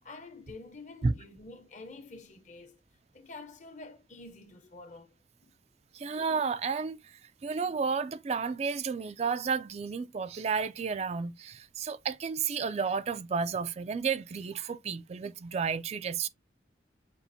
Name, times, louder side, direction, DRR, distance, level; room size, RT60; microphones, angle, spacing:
voice 1, 0.0-2.8 3.1-5.1 5.4-5.5, left 3 dB, 45° left, 0.9 m, -48 dB
voice 2, 5.9-16.3, right 5 dB, 35° right, 0.3 m, -32 dB
6.9 x 2.5 x 2.6 m
head